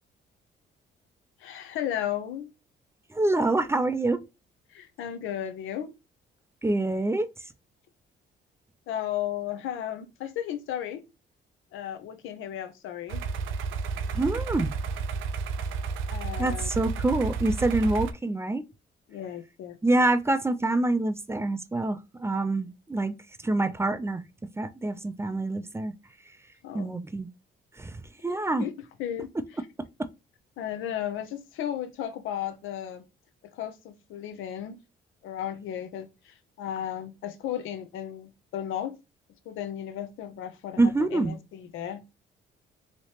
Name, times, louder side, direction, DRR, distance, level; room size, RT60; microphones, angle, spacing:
voice 1, 1.4-2.5 4.7-5.9 8.9-11.0 11.7-13.2 16.1-17.0 19.1-19.8 26.6-27.0 28.3-28.7 29.0-29.3 30.6-33.0 33.5-34.8 35.2-39.0 39.5-42.2, left 10 dB, 85° left, 0.6 m, -35 dB
voice 2, 3.1-4.2 6.6-7.3 14.1-14.7 16.4-18.7 19.8-23.1 23.4-24.2 24.6-25.9 26.7-27.3 27.7-28.7 30.0-30.1 40.8-41.4, right 2 dB, 15° right, 0.4 m, -26 dB
sound 1, 13.1-18.1, right 5 dB, 85° right, 0.5 m, -31 dB
3.2 x 2.9 x 2.9 m
cardioid pair, 90°, 20 cm